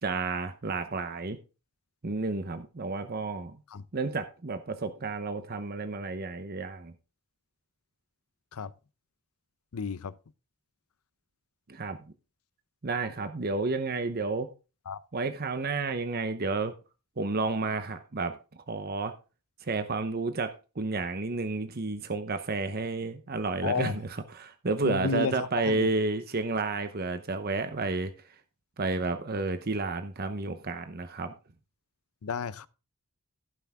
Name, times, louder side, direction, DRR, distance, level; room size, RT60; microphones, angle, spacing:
voice 1, 0.0-1.4 2.0-3.6 3.9-6.9 11.7-12.0 12.8-14.5 15.1-16.7 17.2-18.4 18.7-19.1 19.6-28.1 28.8-31.3, right 3 dB, 45° right, 0.8 m, -31 dB
voice 2, 9.7-10.1 14.9-15.0 23.6-24.0 24.8-25.9 32.2-32.7, left 5 dB, 85° left, 0.6 m, -32 dB
15.5 x 5.9 x 3.6 m
head